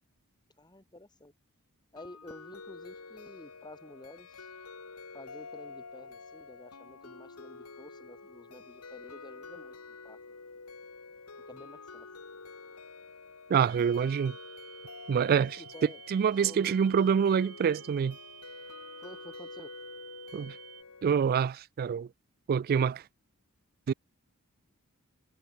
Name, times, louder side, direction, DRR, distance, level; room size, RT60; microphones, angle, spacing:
voice 1, 0.6-1.3 1.9-4.5 5.1-10.2 11.5-12.1 15.3-16.8 19.0-19.7, left 1 dB, 20° left, 7.8 m, -51 dB
sound 1, 2.0-21.1, left 4 dB, 80° left, 2.2 m, -48 dB
voice 2, 13.5-14.4 15.1-15.5 16.1-18.2 20.3-20.6 21.0-22.1 22.5-23.0 23.9-24.0, right 7 dB, 40° right, 0.3 m, -26 dB
sound 2, 13.7-20.8, right 15 dB, 80° right, 2.7 m, -52 dB
head